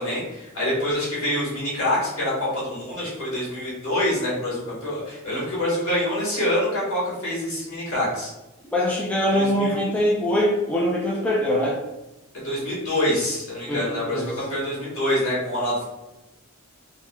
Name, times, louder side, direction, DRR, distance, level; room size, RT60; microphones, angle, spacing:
voice 1, 0.0-8.3 9.3-9.8 12.4-15.8, left 1 dB, 75° left, -7 dB, 1.4 m, -26 dB
voice 2, 8.7-11.8 13.7-14.3, equal, 5° left, -5 dB, 0.4 m, -23 dB
3.5 x 2.1 x 2.2 m, 0.99 s
head